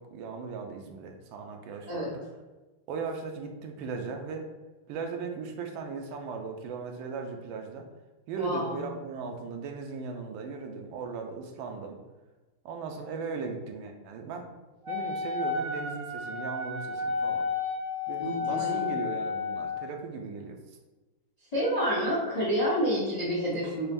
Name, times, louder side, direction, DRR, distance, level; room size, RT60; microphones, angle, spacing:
voice 1, 0.0-2.2 2.9-4.5 4.9-7.9 8.3-12.0 12.6-14.5 14.9-17.5 18.1-20.6, right 5 dB, 75° right, 3 dB, 1.3 m, -37 dB
voice 2, 8.4-8.8 18.2-18.9 21.5-23.9, equal, 60° left, -6 dB, 0.4 m, -29 dB
Wind instrument woodwind instrument, 14.8-19.9, left 5 dB, 60° right, 0.9 m, -32 dB
6.6 x 2.2 x 2.6 m, 1.2 s
omnidirectional pair, 2.3 m